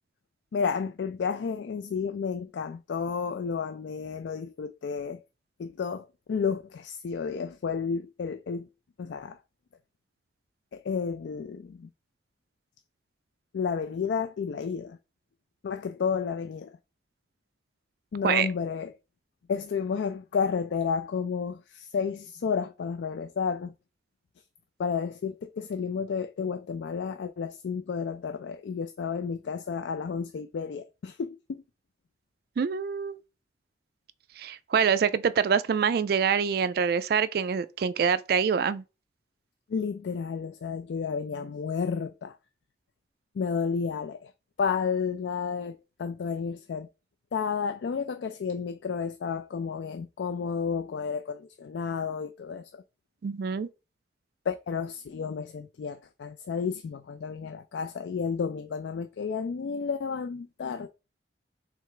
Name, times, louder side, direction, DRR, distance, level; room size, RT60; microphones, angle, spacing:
voice 1, 0.5-5.2 5.6-8.7 9.0-9.4 10.7-11.9 13.5-15.0 15.6-16.7 18.1-18.9 19.5-23.7 24.8-31.6 39.7-42.4 43.3-44.3 44.6-46.9 47.3-52.8 54.5-60.9, left 6 dB, 75° left, 0.3 m, -31 dB
voice 2, 32.6-33.2 34.4-38.8 53.2-53.7, right 6 dB, 55° right, 0.3 m, -25 dB
3.3 x 3.2 x 4.8 m
head